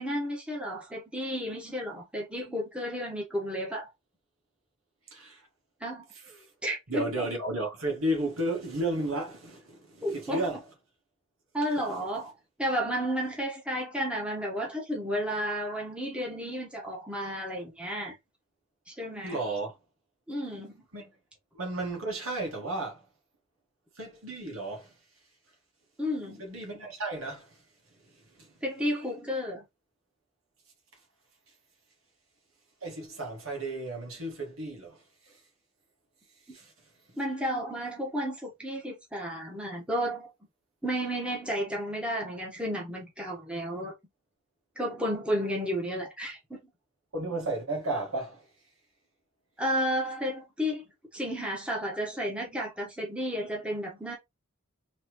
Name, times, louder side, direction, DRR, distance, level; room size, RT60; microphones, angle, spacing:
voice 1, 0.0-3.9 5.8-6.0 6.6-7.3 10.0-10.5 11.5-12.3 12.6-18.1 18.9-19.4 20.3-20.8 26.0-26.4 28.6-29.6 37.2-40.3 40.8-43.9 44.8-46.6 49.6-50.8 51.1-54.1, equal, 5° right, 1.3 m, -32 dB
voice 2, 5.1-5.5 6.1-6.5 6.9-10.6 11.8-11.9 19.2-19.7 20.9-21.1 21.5-23.0 24.0-24.9 26.4-27.6 28.1-28.5 32.8-35.4 36.5-36.7 47.1-48.5, right 2 dB, 75° right, 1.9 m, -33 dB
4.2 x 3.3 x 3.1 m
head